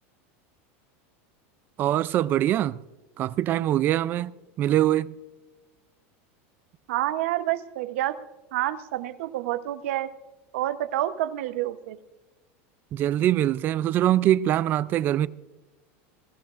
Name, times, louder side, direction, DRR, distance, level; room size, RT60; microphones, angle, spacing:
voice 1, 1.8-2.8 3.2-5.2 12.9-15.3, right 12 dB, 30° right, 0.3 m, -23 dB
voice 2, 6.9-8.2 8.5-10.1 10.5-12.0, right 14 dB, 75° right, 0.9 m, -28 dB
21.5 x 14.0 x 2.5 m
supercardioid pair, 165°, 7 cm